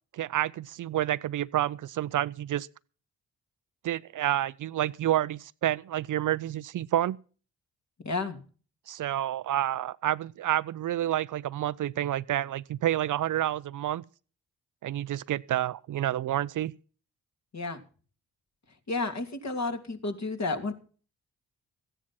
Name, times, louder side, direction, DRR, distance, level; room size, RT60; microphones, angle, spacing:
voice 1, 0.1-2.7 3.8-7.2 8.9-14.0 14.8-16.7, right 12 dB, 55° right, 0.6 m, -29 dB
voice 2, 8.0-8.4 17.5-17.8 18.9-20.7, left 3 dB, 45° left, 2.7 m, -31 dB
14.5 x 10.0 x 5.9 m
hypercardioid pair, 50°, 38 cm